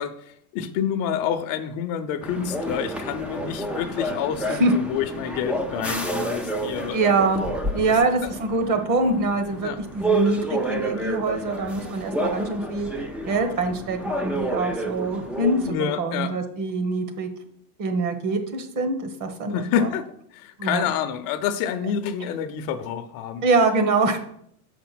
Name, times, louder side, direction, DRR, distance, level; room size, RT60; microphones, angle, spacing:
voice 1, 0.0-7.0 9.6-9.8 15.7-16.4 19.5-23.4, left 8 dB, 50° left, 9 dB, 0.7 m, -28 dB
sound 1, 2.2-15.7, right 2 dB, 5° right, 0.4 m, -29 dB
voice 2, 6.9-7.4 7.7-12.9 13.3-17.3 17.8-19.9 20.6-20.9 23.4-24.2, right 3 dB, 45° right, 7 dB, 1.4 m, -24 dB
6.8 x 5.1 x 5.9 m, 0.69 s
supercardioid pair, 125°, 44 cm